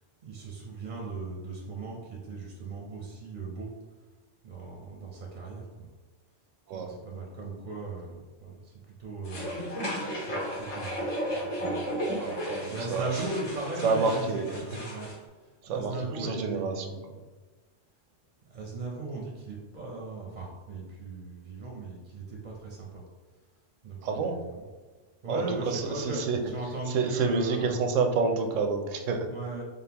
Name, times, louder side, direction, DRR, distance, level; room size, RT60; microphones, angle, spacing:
voice 1, 0.2-3.7 4.4-5.9 6.7-8.7 9.0-9.5 10.2-12.1 12.7-15.1 15.7-17.0 18.5-23.0 23.8-24.7 25.2-27.7 28.2-28.4 29.3-29.6, right 2 dB, 45° right, -1 dB, 0.6 m, -38 dB
sound 1, 9.2-15.2, equal, 75° left, 1.5 m, -34 dB
voice 2, 12.2-13.3 13.8-14.6 15.6-17.0 24.0-24.4 25.3-26.4 26.9-29.3, right 4 dB, 90° right, 4 dB, 1.0 m, -29 dB
3.8 x 3.8 x 2.8 m, 1.3 s
omnidirectional pair, 1.3 m